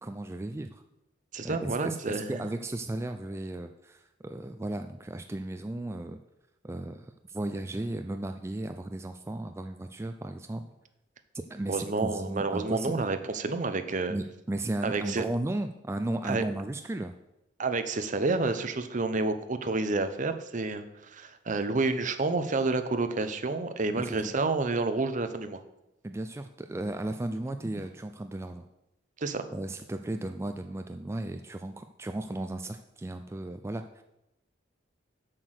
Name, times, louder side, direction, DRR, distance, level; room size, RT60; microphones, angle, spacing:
voice 1, 0.0-0.8 1.4-6.2 6.6-10.7 11.3-13.0 14.1-17.1 23.9-24.3 26.0-28.6 29.5-34.0, right 1 dB, 15° right, 7 dB, 0.4 m, -35 dB
voice 2, 1.3-2.4 11.7-14.2 14.8-15.2 16.2-16.4 17.6-25.6 29.2-29.4, right 3 dB, 40° right, 9 dB, 0.7 m, -29 dB
7.6 x 6.1 x 6.5 m, 0.89 s
head